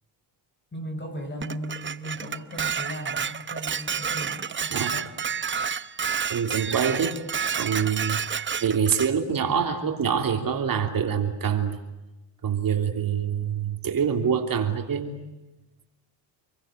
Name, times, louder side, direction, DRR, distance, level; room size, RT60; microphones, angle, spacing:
voice 1, 0.7-5.1, equal, 25° left, 4 dB, 7.7 m, -37 dB
Dishes pots and pans, 1.4-9.1, right 6 dB, 25° right, 0.9 m, -30 dB
voice 2, 6.3-7.2 7.6-8.2 8.6-11.8 12.4-15.1, right 7 dB, 50° right, 5 dB, 3.2 m, -25 dB
28.0 x 23.0 x 9.2 m, 1.0 s
cardioid pair, 115°, 45 cm